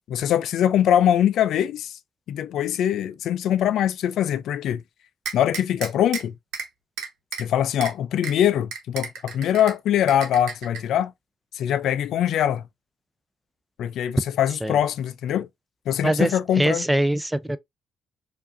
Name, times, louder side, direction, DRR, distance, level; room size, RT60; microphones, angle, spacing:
voice 1, 0.1-2.0 2.3-4.8 5.3-6.3 7.4-11.1 11.5-12.7 13.8-15.5 15.9-16.8, left 10 dB, 75° left, 0.3 m, -22 dB
sound 1, 5.2-6.2 6.5-6.7 7.0-7.4 7.8-7.9 8.2-8.3 8.7-9.7 10.1-10.8, right 6 dB, 85° right, 1.1 m, -32 dB
voice 2, 16.0-17.6, right 1 dB, 5° right, 0.3 m, -23 dB
4.6 x 2.6 x 2.4 m
cardioid pair, 90°, 0 cm